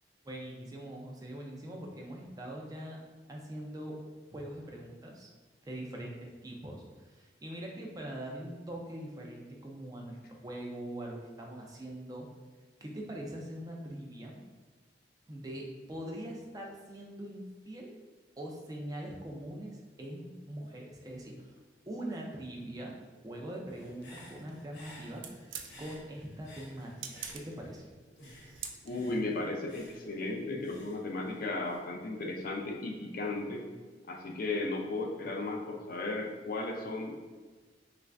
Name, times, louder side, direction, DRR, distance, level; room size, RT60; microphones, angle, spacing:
voice 1, 0.2-3.0 3.3-4.0 4.3-5.3 5.6-12.3 12.8-14.4 15.3-18.0 18.4-21.6 21.9-22.9 23.2-25.2 25.8-27.8, right 1 dB, 20° right, 0 dB, 0.4 m, -42 dB
Human voice / Breathing, 23.7-27.8 28.2-31.8, left 1 dB, 85° left, 0.9 m, -55 dB
sound 1, 23.8-29.2, right 7 dB, 90° right, 0.4 m, -48 dB
voice 2, 28.8-33.7 34.1-37.1, left 2 dB, 50° left, 2 dB, 0.4 m, -35 dB
3.1 x 2.4 x 3.3 m, 1.4 s
head